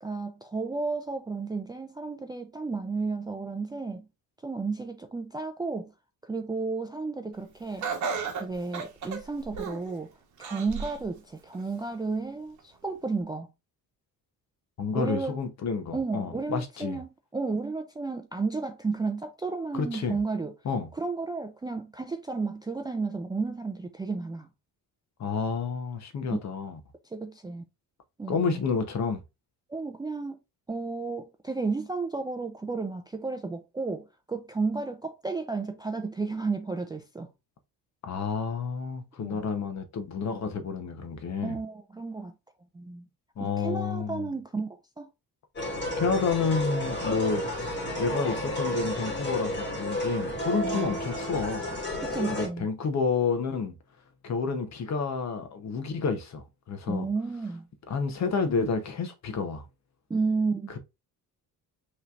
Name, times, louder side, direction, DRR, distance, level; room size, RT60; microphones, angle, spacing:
voice 1, 0.0-4.1 4.4-5.9 6.2-7.9 8.4-10.1 10.4-13.5 14.9-15.4 15.9-20.5 20.9-24.5 26.3-26.4 27.1-27.6 28.2-28.7 29.7-30.4 30.7-37.3 39.2-39.4 41.4-42.3 42.7-43.1 43.4-45.1 50.6-51.0 52.0-52.7 56.9-57.7 60.1-60.8, right 4 dB, 10° right, 0.3 m, -32 dB
Laughter, 7.8-9.9 10.4-11.0 11.5-11.6 12.6-12.7, right 5 dB, 50° right, 1.2 m, -34 dB
voice 2, 14.8-17.0 19.7-20.2 20.6-20.9 25.2-26.8 28.3-29.2 38.0-41.6 43.4-44.3 45.9-51.7 52.3-53.7 54.2-57.1 57.9-59.6, left 5 dB, 45° left, 0.9 m, -30 dB
sound 1, 45.6-52.5, left 1 dB, 30° left, 2.0 m, -31 dB
5.6 x 3.2 x 2.4 m
cardioid pair, 135°, 37 cm